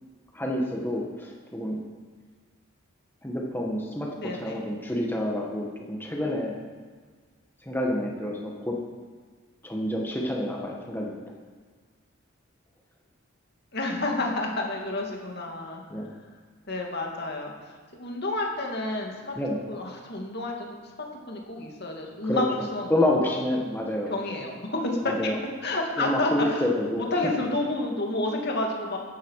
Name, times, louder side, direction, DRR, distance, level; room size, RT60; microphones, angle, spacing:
voice 1, 0.3-1.8 3.2-6.5 7.6-8.8 9.6-11.1 15.9-16.1 19.3-19.6 22.2-24.4 25.0-25.4 26.0-27.1, left 1 dB, 10° left, -1 dB, 1.5 m, -28 dB
voice 2, 4.2-4.6 13.7-15.8 16.7-19.3 19.7-20.9 21.3-22.5 22.7-23.0 24.1-25.3 25.6-26.7 27.0-29.0, left 2 dB, 50° left, 1 dB, 2.2 m, -30 dB
14.5 x 11.5 x 4.8 m, 1.5 s
head